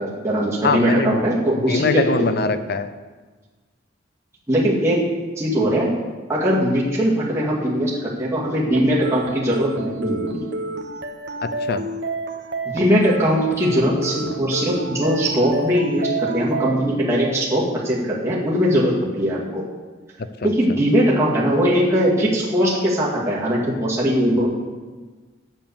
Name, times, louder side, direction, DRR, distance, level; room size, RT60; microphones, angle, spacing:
voice 1, 0.0-2.3 4.5-5.1 5.4-5.9 6.3-10.4 12.7-19.6 20.4-24.5, equal, 15° right, -6 dB, 2.1 m, -20 dB
voice 2, 0.6-1.2 1.7-2.9 11.4-11.8 20.4-20.5, left 4 dB, 55° left, 11 dB, 0.6 m, -22 dB
sound 1, 8.7-16.7, right 2 dB, 65° right, 0.9 m, -29 dB
7.7 x 7.3 x 6.9 m, 1.3 s
head